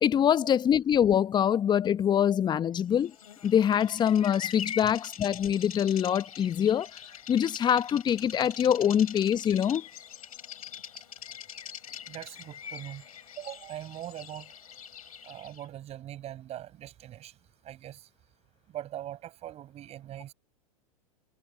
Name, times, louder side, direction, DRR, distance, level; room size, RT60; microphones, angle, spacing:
voice 1, 0.0-3.1 3.4-7.0 7.3-9.8, left 9 dB, 25° left, 1.0 m, -24 dB
Bird vocalization bird call bird song, 3.0-15.7, left 8 dB, 75° left, 4.4 m, -43 dB
voice 2, 12.1-13.1 13.4-14.6 15.2-17.4 17.6-18.1 18.7-20.3, right 12 dB, 35° right, 7.3 m, -41 dB
figure-of-eight pair, 90°, 19 cm